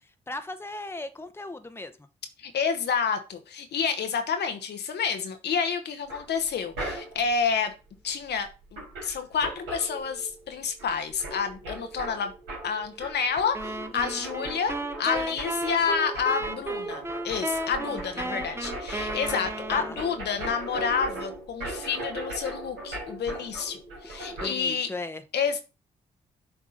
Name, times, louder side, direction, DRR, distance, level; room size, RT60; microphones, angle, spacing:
voice 1, 0.3-1.9 17.9-18.4 19.7-20.0 24.4-25.2, left 2 dB, 15° left, 9 dB, 0.9 m, -37 dB
voice 2, 2.4-7.7 8.0-12.3 12.6-14.7 15.0-24.9 25.3-25.6, left 6 dB, 65° left, 7 dB, 1.0 m, -29 dB
sound 1, 6.1-7.4 8.4-8.5 8.7-10.5 10.8-24.5, right 1 dB, 85° right, 3.1 m, -38 dB
sound 2, 13.5-20.1, right 1 dB, 15° right, 1.0 m, -34 dB
7.1 x 3.7 x 3.9 m, 0.30 s
hypercardioid pair, 40°, 19 cm